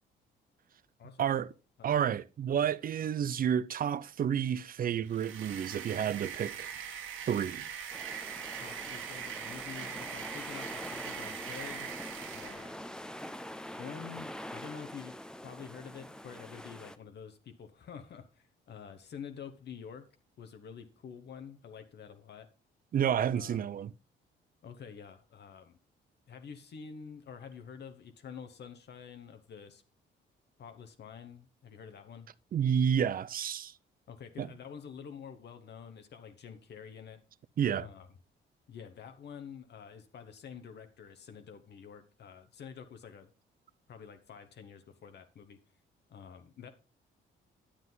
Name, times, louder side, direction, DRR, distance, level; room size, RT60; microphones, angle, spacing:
voice 1, 1.2-1.5 1.8-6.8 7.3-7.7 22.9-23.9 32.5-33.8 34.4-34.5 37.6-37.9, right 8 dB, 45° right, 0.5 m, -30 dB
sound 1, 5.0-12.7, right 8 dB, 85° right, 1.3 m, -42 dB
sound 2, 7.9-17.0, left 1 dB, 5° left, 0.6 m, -44 dB
voice 2, 8.5-12.0 12.3-12.8 13.8-15.2 15.4-20.1 20.4-22.5 23.3-23.6 24.6-25.8 26.3-29.8 30.6-32.3 34.1-37.2 37.7-38.1 38.7-43.3 43.9-45.6 46.1-46.7, left 7 dB, 60° left, 1.1 m, -48 dB
9.9 x 7.5 x 3.9 m
cardioid pair, 90°, 20 cm